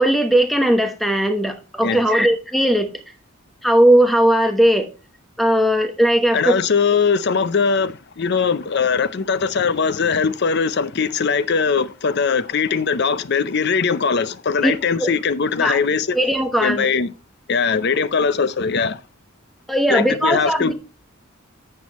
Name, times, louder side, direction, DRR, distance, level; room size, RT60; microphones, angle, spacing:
voice 1, 0.0-2.9 3.6-4.9 5.4-6.6 14.6-14.7 15.0-15.1 15.6-15.8 16.1-16.9 19.7-20.7, right 1 dB, ahead, 1.0 m, -17 dB
voice 2, 6.3-16.2 16.6-17.1 17.5-19.0 19.9-20.7, left 5 dB, 55° left, 0.6 m, -20 dB
10.5 x 7.6 x 3.0 m
head